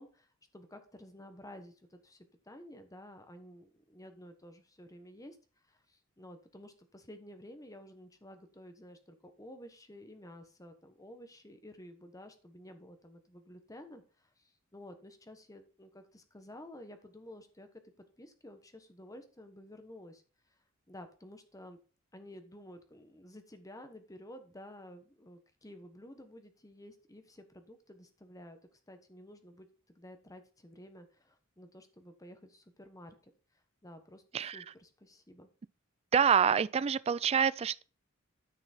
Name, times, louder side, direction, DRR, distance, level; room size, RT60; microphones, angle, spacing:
voice 1, 0.0-5.4 5.6-17.7 18.2-20.2 20.5-20.6 20.9-21.8 22.1-28.6 28.9-33.2 33.8-35.5, left 1 dB, 15° left, 1.2 m, -52 dB
voice 2, 34.3-34.6 36.1-37.8, right 7 dB, 30° right, 0.3 m, -27 dB
9.7 x 6.0 x 4.3 m
head